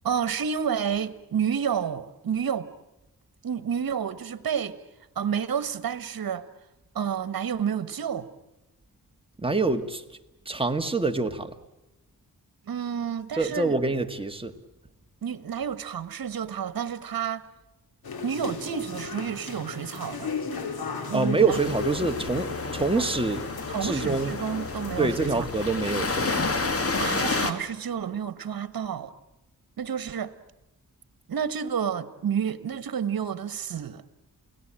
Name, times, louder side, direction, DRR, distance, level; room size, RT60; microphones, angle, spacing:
voice 1, 0.0-2.7 3.4-4.8 5.1-6.5 6.9-8.3 12.7-13.7 15.2-17.5 18.2-20.3 21.1-21.6 22.9-23.0 23.7-25.5 27.0-29.1 29.8-30.3 31.3-34.0, right 8 dB, 70° right, 1.4 m, -30 dB
voice 2, 9.4-10.0 10.4-11.5 13.3-14.6 21.1-23.4 23.8-24.3 25.0-26.4, right 3 dB, 15° right, 1.8 m, -26 dB
sound 1, 18.0-27.2, left 5 dB, 80° left, 3.1 m, -37 dB
sound 2, 21.5-27.5, left 3 dB, 40° left, 2.3 m, -30 dB
29.0 x 18.0 x 8.9 m
cardioid pair, 85°, 36 cm